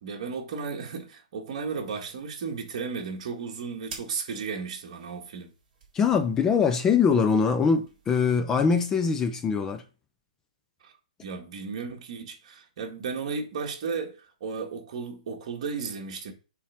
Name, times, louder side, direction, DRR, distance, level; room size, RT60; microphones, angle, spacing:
voice 1, 0.0-5.5 10.8-10.9 11.2-16.3, right 5 dB, 45° right, 1.9 m, -34 dB
sound 1, 1.6-8.4, right 4 dB, 25° right, 3.8 m, -52 dB
voice 2, 5.9-9.8, left 5 dB, 10° left, 0.4 m, -23 dB
7.1 x 3.7 x 5.8 m
hypercardioid pair, 155°, 4 cm